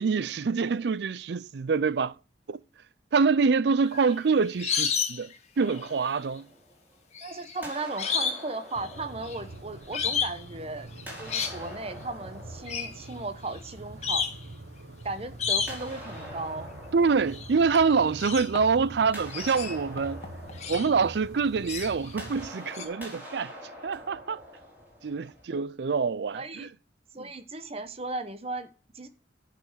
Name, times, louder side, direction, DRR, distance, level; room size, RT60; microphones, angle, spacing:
voice 1, 0.0-2.1 2.5-2.6 3.1-6.5 16.9-20.2 20.7-23.5 23.8-24.4 25.0-26.7, right 5 dB, 65° right, 0.4 m, -26 dB
sound 1, 3.8-5.3 5.6-6.2 7.1-8.5 8.8-9.4 9.9-10.4 11.0-11.6 12.7-12.9 13.5-13.6 14.0-14.4 15.4-16.0 17.3-17.5 17.7-18.9 19.3-20.9 21.6-22.1 22.7-22.9, left 6 dB, 35° left, 1.4 m, -31 dB
sound 2, 5.6-7.2 7.6-10.4 11.0-13.8 15.7-18.4 18.8-25.4, equal, 10° right, 3.7 m, -46 dB
voice 2, 7.2-10.9 11.2-14.2 15.0-16.7 26.3-26.7 27.1-28.7 28.9-29.1, right 2 dB, 35° right, 1.0 m, -36 dB
sound 3, 8.8-22.5, right 1 dB, 85° right, 1.2 m, -45 dB
9.2 x 5.7 x 6.3 m
head